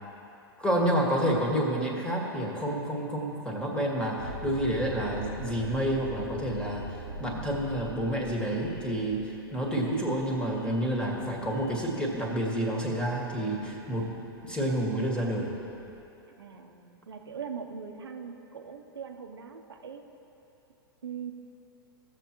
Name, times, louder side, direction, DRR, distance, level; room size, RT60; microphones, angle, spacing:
voice 1, 0.6-14.1 14.4-15.5, right 1 dB, 5° left, -2 dB, 1.9 m, -29 dB
sound 1, 4.2-16.0, equal, 55° left, 1.3 m, -44 dB
voice 2, 16.4-20.0 21.0-21.3, right 6 dB, 80° right, 4 dB, 0.8 m, -41 dB
17.0 x 7.4 x 3.1 m, 2.9 s
hypercardioid pair, 100°, 13 cm